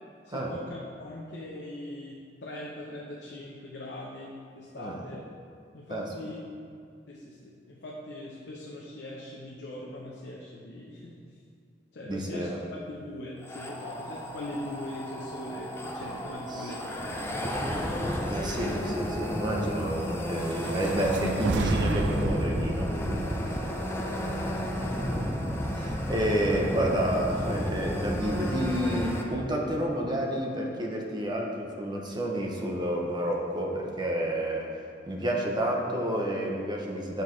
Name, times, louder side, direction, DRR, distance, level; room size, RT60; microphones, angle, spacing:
voice 1, 0.2-5.2 5.7-6.4 7.1-11.2 11.9-17.9 24.0-25.1, left 1 dB, 70° left, -4 dB, 0.7 m, -41 dB
voice 2, 12.0-12.6 16.5-16.7 18.3-23.4 24.2-24.3 24.7-34.7 35.1-37.2, right 1 dB, 25° right, -1 dB, 0.7 m, -30 dB
sound 1, 13.4-29.2, equal, 15° left, 0.5 m, -32 dB
sound 2, 20.3-24.6, right 3 dB, 80° right, 0.4 m, -33 dB
6.7 x 5.7 x 3.1 m, 2.3 s
head